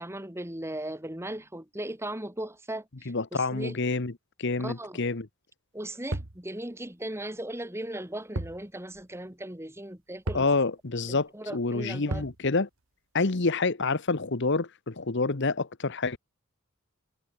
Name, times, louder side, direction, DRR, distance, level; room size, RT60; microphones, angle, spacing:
voice 1, 0.0-3.8 4.6-5.0 5.7-10.5 11.1-12.2, right 1 dB, 10° right, 2.8 m, -37 dB
voice 2, 3.1-4.1 4.4-5.3 10.3-12.7 13.1-16.2, left 3 dB, 55° left, 1.1 m, -28 dB
sound 1, 6.1-6.4 8.4-8.6 8.9-9.0 10.3-10.6 12.1-12.4, right 1 dB, 65° right, 1.8 m, -33 dB
head